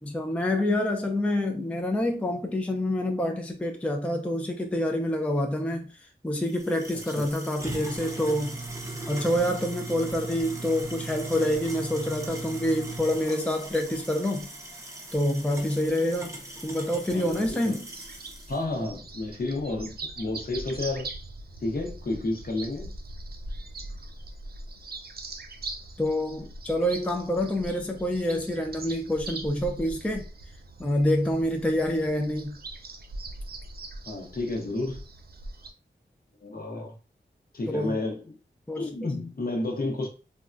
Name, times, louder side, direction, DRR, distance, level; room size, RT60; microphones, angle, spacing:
voice 1, 0.0-8.6 9.1-14.5 15.1-16.3 16.6-17.9 26.0-30.2 30.8-32.6 37.7-38.0 38.7-38.9, left 1 dB, 5° left, 0.4 m, -27 dB
sound 1, 6.5-18.5, right 2 dB, 15° right, 0.7 m, -38 dB
voice 2, 17.1-17.7 18.5-21.1 21.6-22.9 34.1-35.0 36.4-37.0 37.5-38.4 38.8-40.1, left 2 dB, 50° left, 0.8 m, -31 dB
sound 2, 17.9-35.7, right 2 dB, 55° right, 0.5 m, -41 dB
3.5 x 2.2 x 2.5 m
wide cardioid pair, 90°, 19 cm